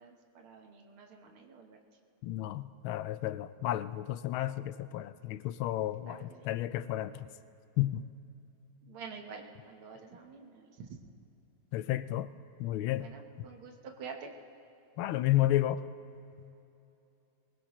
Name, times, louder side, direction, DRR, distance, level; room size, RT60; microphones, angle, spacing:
voice 1, 0.0-1.8 6.0-6.5 8.9-11.0 13.0-14.3, right 5 dB, 80° right, 3 dB, 2.1 m, -48 dB
voice 2, 2.2-7.3 7.8-8.1 11.7-12.3 12.6-13.1 15.0-15.8, left 14 dB, 85° left, 14 dB, 1.4 m, -32 dB
23.0 x 20.0 x 3.1 m, 2.9 s
omnidirectional pair, 2.3 m